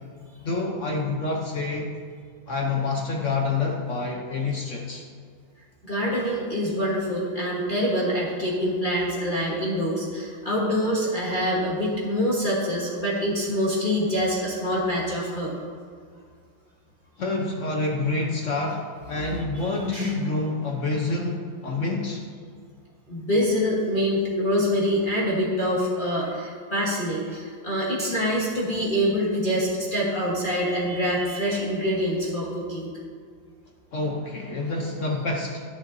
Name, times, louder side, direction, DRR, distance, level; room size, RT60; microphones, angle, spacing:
voice 1, 0.4-1.9 2.5-5.1 17.2-22.2 33.9-35.6, left 3 dB, 60° left, 1 dB, 0.8 m, -27 dB
voice 2, 5.8-15.5 19.9-20.1 23.1-32.9, equal, 30° left, -6 dB, 1.3 m, -25 dB
10.5 x 9.2 x 2.7 m, 2.1 s
omnidirectional pair, 2.2 m